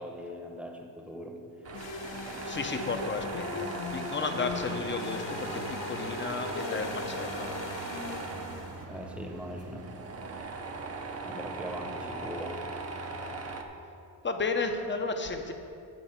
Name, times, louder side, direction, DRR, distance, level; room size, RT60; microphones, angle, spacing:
voice 1, 0.0-1.4 8.9-9.9 11.2-12.6, equal, 5° right, 2 dB, 1.0 m, -40 dB
Tools, 1.6-13.6, right 3 dB, 35° right, 0.7 m, -39 dB
sound 1, 1.7-8.8, left 5 dB, 80° left, 0.9 m, -39 dB
sound 2, 1.8-10.5, right 1 dB, 75° right, 2.0 m, -46 dB
voice 2, 2.5-7.5 14.2-15.5, left 4 dB, 25° left, 6 dB, 0.7 m, -33 dB
10.5 x 4.6 x 7.9 m, 2.6 s
cardioid pair, 140°, 44 cm